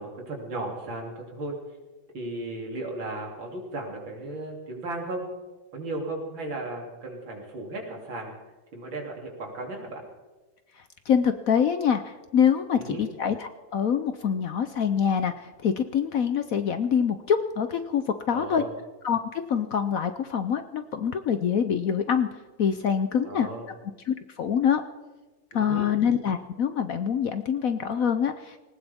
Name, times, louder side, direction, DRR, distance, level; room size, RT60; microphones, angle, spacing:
voice 1, 0.0-1.6 2.1-5.3 5.7-8.3 8.7-10.0 12.8-13.1 18.3-18.7 23.3-23.7 25.5-25.9, right 2 dB, 85° right, 0 dB, 3.8 m, -35 dB
voice 2, 11.1-18.6 19.0-22.3 22.6-23.5 24.1-24.8 25.5-28.6, left 7 dB, 60° left, 9 dB, 0.9 m, -25 dB
19.5 x 19.0 x 3.6 m, 1.2 s
omnidirectional pair, 2.1 m